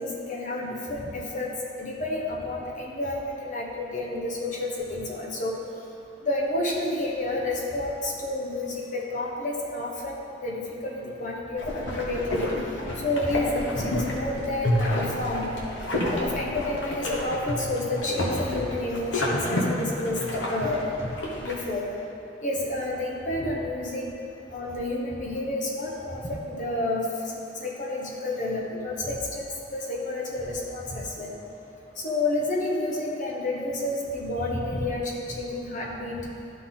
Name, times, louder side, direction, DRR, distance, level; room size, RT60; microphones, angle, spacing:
voice 1, 0.0-1.5 1.8-5.5 6.2-12.5 13.0-15.5 16.2-20.2 20.5-20.8 21.4-21.9 22.4-24.0 24.5-27.1 27.6-31.3 32.0-36.2, left 2 dB, 45° left, -2 dB, 1.2 m, -30 dB
sound 1, 11.6-21.6, left 1 dB, 80° left, 1.2 m, -29 dB
12.0 x 4.1 x 3.9 m, 2.6 s
head